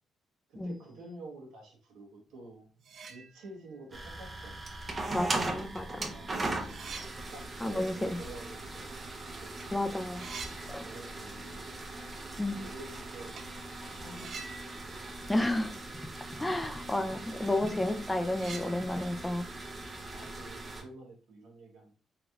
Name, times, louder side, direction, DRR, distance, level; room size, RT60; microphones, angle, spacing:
voice 1, 0.5-2.7 3.1-4.5 6.0-6.3 7.3-9.5 10.8-11.7 12.6-13.3 13.9-15.1 16.3-16.5 20.1-21.9, right 2 dB, 85° right, 0 dB, 1.1 m, -49 dB
sound 1, 2.4-2.5 2.8-3.8 4.2-4.3 5.2-5.3 5.7-9.2 9.5-9.7 9.9-11.5 11.8-11.9 13.3-13.6 14.1-16.2 16.5-16.6 17.0-17.1 17.5-20.7, right 5 dB, 55° right, 0.5 m, -49 dB
sound 2, 3.9-20.8, right 2 dB, 30° right, 0.7 m, -40 dB
voice 2, 5.1-6.1 7.6-8.2 9.7-10.2 10.7-10.8 12.4-12.6 15.3-15.7 16.4-19.5, left 1 dB, 10° left, 7 dB, 0.5 m, -31 dB
3.9 x 2.9 x 2.4 m, 0.38 s
cardioid pair, 90°, 0 cm